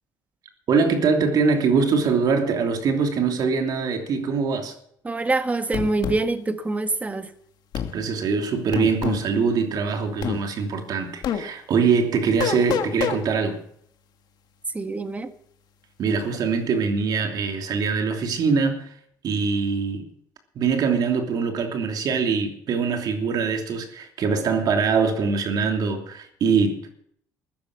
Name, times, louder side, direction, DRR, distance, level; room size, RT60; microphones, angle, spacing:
voice 1, 0.7-4.7 7.9-13.6 16.0-18.9 19.2-20.1 20.5-26.9, right 5 dB, 60° right, 3.0 m, -23 dB
voice 2, 5.0-7.3 14.7-15.3, right 2 dB, 20° right, 1.5 m, -25 dB
sound 1, 5.7-6.2 7.7-7.9 8.7-9.2 10.2-10.4 11.2-11.4 12.4-13.2, left 9 dB, 60° left, 1.7 m, -26 dB
14.5 x 10.5 x 7.2 m
cardioid pair, 95°, 8 cm